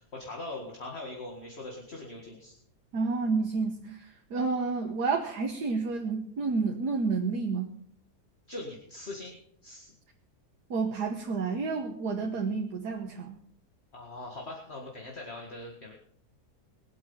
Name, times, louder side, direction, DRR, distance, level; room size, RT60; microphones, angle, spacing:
voice 1, 0.0-2.5 8.5-9.4 9.6-9.9 13.9-15.9, left 2 dB, 40° left, 0 dB, 2.3 m, -41 dB
voice 2, 2.9-7.7 10.7-13.4, right 4 dB, 75° right, 2 dB, 1.9 m, -30 dB
22.5 x 8.4 x 5.6 m, 0.68 s
omnidirectional pair, 1.7 m